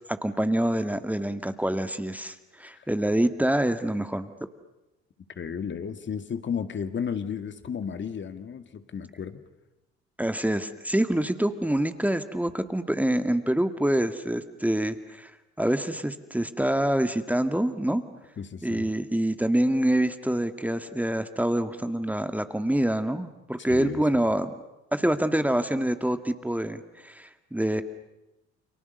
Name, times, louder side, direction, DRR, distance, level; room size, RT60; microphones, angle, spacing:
voice 1, 0.1-4.3 10.2-15.3 15.6-18.0 18.6-24.5 24.9-27.8, right 1 dB, 5° right, 9 dB, 2.0 m, -26 dB
voice 2, 5.4-9.4 18.4-18.9 23.7-24.0, left 7 dB, 35° left, 9 dB, 2.2 m, -33 dB
30.0 x 28.5 x 6.7 m, 0.95 s
figure-of-eight pair, 55°, 32 cm